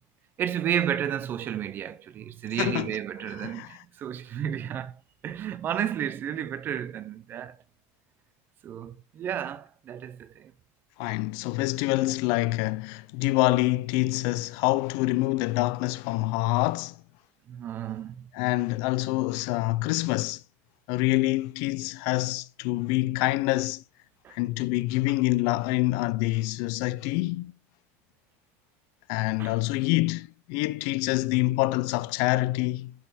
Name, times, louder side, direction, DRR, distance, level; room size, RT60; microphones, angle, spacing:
voice 1, 0.4-5.0 5.2-7.6 8.6-10.5 17.5-18.3 24.2-24.4 29.4-29.6, right 9 dB, 30° right, 0.6 m, -32 dB
voice 2, 2.6-2.9 3.4-3.7 11.0-17.0 18.3-20.4 20.9-23.8 24.3-27.5 29.1-32.9, left 19 dB, 55° left, 0.4 m, -26 dB
11.0 x 4.1 x 4.1 m
cardioid pair, 160°, 7 cm